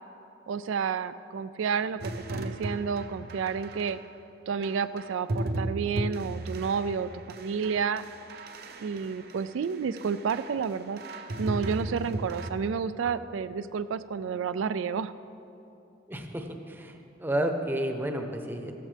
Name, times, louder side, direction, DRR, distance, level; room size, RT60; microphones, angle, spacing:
voice 1, 0.5-4.0 4.5-8.0 8.8-11.0 11.4-15.1, right 6 dB, 90° right, 13 dB, 0.4 m, -30 dB
sound 1, 2.0-4.0 4.6-9.6 10.0-10.7 11.0-12.5, right 2 dB, 55° right, 0.7 m, -36 dB
voice 2, 16.1-18.7, right 1 dB, 10° right, 4 dB, 0.8 m, -31 dB
15.5 x 13.5 x 3.4 m, 2.8 s
head